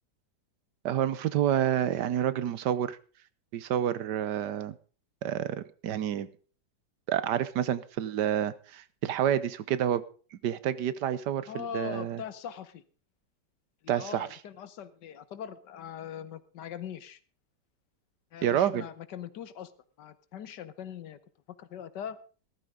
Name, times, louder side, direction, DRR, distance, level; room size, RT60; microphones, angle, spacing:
voice 1, 0.8-3.0 3.5-4.8 5.2-6.3 7.1-10.0 10.3-12.2 13.9-14.3 18.4-18.8, right 10 dB, 75° right, 16 dB, 1.4 m, -29 dB
voice 2, 11.5-12.8 13.8-17.2 18.3-19.7 20.0-21.2 21.6-22.2, left 8 dB, 80° left, 14 dB, 1.6 m, -41 dB
16.0 x 13.5 x 3.7 m, 0.37 s
omnidirectional pair, 1.9 m